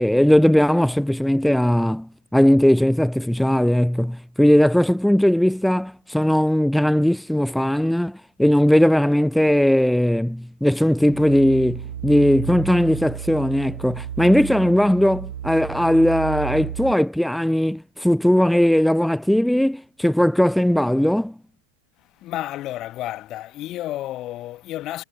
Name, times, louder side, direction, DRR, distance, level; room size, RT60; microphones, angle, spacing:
voice 1, 0.0-21.3, equal, ahead, 0.4 m, -18 dB
sound 1, 11.0-16.9, right 10 dB, 65° right, 1.3 m, -33 dB
voice 2, 22.2-25.0, left 14 dB, 35° left, 1.5 m, -31 dB
figure-of-eight pair, 90°, 0 cm